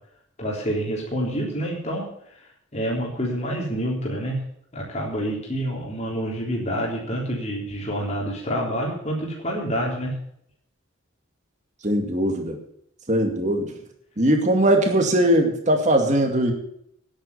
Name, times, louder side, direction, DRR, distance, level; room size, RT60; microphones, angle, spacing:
voice 1, 0.4-2.1 2.7-4.4 4.7-10.1, equal, 30° left, -3 dB, 3.7 m, -27 dB
voice 2, 11.8-12.6 13.1-13.7 14.2-16.5, right 1 dB, 35° right, 4 dB, 2.4 m, -20 dB
11.0 x 8.8 x 8.2 m, 0.70 s
head